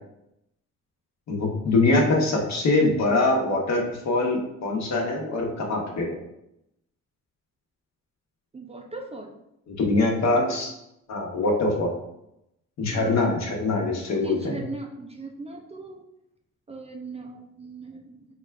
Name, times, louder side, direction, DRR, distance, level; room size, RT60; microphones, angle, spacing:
voice 1, 1.3-6.1 9.7-10.7 11.1-11.9 12.8-14.6, left 2 dB, 60° left, 0 dB, 1.0 m, -23 dB
voice 2, 8.5-9.4 10.3-10.6 12.9-13.2 14.1-16.0 16.7-18.3, right 2 dB, 20° right, 3 dB, 0.4 m, -38 dB
4.1 x 2.3 x 3.3 m, 0.83 s
cardioid pair, 90°, 30 cm